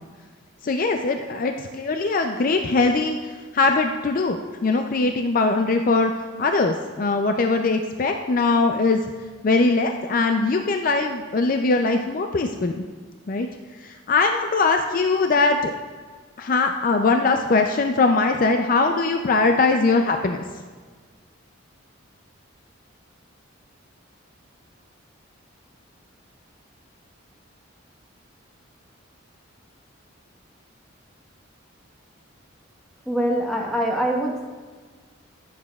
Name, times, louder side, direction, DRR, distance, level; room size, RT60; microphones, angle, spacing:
voice 1, 0.6-3.2 3.5-4.4 4.6-6.1 6.4-9.0 9.4-12.7 13.3-13.5 13.8-15.7 16.4-20.4, left 3 dB, 40° left, 5 dB, 0.4 m, -21 dB
voice 2, 33.0-34.5, right 1 dB, ahead, -1 dB, 1.1 m, -24 dB
14.0 x 7.3 x 2.3 m, 1.5 s
head